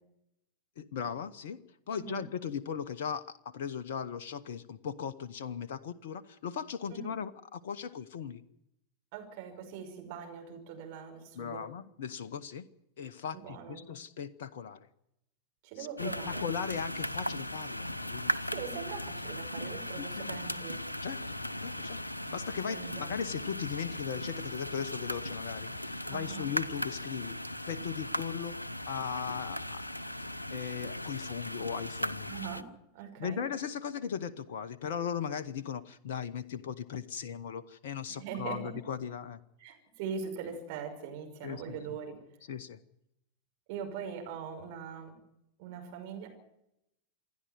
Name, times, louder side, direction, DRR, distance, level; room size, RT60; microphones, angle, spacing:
voice 1, 0.8-1.6 1.9-8.4 11.3-12.6 13.0-14.9 16.0-18.3 20.0-20.3 21.0-21.2 21.6-27.4 27.7-29.8 30.5-32.3 33.2-39.4 41.4-41.8 42.5-42.8, left 7 dB, 55° left, 12 dB, 1.0 m, -38 dB
voice 2, 1.9-2.2 6.9-7.2 9.1-11.7 13.3-13.9 15.6-16.5 18.4-20.8 22.7-23.1 26.1-26.5 32.3-33.4 38.1-38.7 39.6-42.2 43.7-45.1 45.6-46.3, right 7 dB, 45° right, 3 dB, 5.8 m, -42 dB
sound 1, 16.0-32.6, left 1 dB, 85° left, 0.7 m, -38 dB
27.5 x 10.5 x 9.4 m, 0.81 s
figure-of-eight pair, 90°, 0 cm